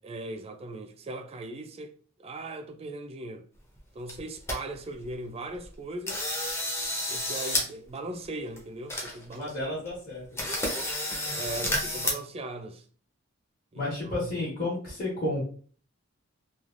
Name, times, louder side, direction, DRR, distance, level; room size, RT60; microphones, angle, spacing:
voice 1, 0.0-1.9 2.2-3.4 3.9-6.2 7.1-9.8 11.3-12.8 13.7-14.3, right 2 dB, 30° right, 0.4 m, -39 dB
sound 1, 3.8-3.9 4.1-4.6 5.0-5.1 5.5-5.7 6.1-7.7 7.9-8.0 8.6-8.7 8.9-9.5 9.9-10.0 10.4-12.1, left 1 dB, 15° left, 0.7 m, -30 dB
voice 2, 9.3-10.5 13.7-15.4, left 1 dB, 40° left, 1.2 m, -32 dB
3.1 x 2.3 x 2.5 m
head